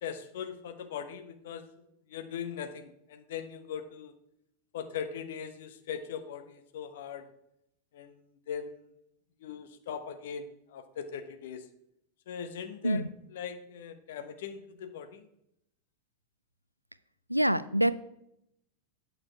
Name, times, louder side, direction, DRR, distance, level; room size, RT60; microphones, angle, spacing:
voice 1, 0.0-1.6 2.1-4.1 4.7-7.2 7.9-8.9 9.4-11.7 12.3-13.0 13.3-15.2, left 7 dB, 55° left, 8 dB, 1.0 m, -40 dB
voice 2, 17.3-17.9, right 1 dB, 90° right, 16 dB, 0.4 m, -25 dB
9.0 x 6.6 x 4.6 m, 0.78 s
figure-of-eight pair, 90°, 0 cm